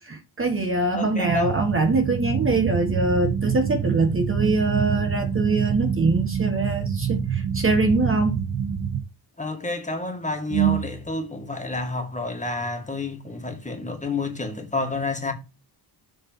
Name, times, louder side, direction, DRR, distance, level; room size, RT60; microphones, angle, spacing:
voice 1, 0.1-8.4 10.5-10.8, right 3 dB, 30° right, 1.5 m, -23 dB
voice 2, 0.9-1.6 9.4-15.3, left 3 dB, 15° left, 2.1 m, -29 dB
sound 1, 1.2-9.0, right 7 dB, 65° right, 1.9 m, -27 dB
7.7 x 4.2 x 5.4 m
cardioid pair, 125°, 42 cm